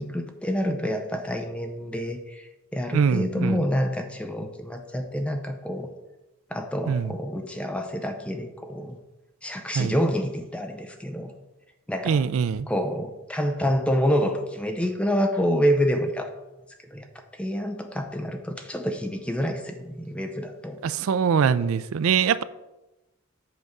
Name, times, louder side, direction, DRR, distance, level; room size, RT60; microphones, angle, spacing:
voice 1, 0.0-5.9 6.5-9.0 9.4-11.3 11.9-12.2 12.7-16.3 16.9-17.1 17.4-20.8, equal, 5° left, 0.5 m, -27 dB
voice 2, 2.9-3.7 6.9-7.1 9.8-10.0 12.1-12.7 20.8-22.4, right 6 dB, 70° right, 0.4 m, -23 dB
7.9 x 3.6 x 6.5 m
head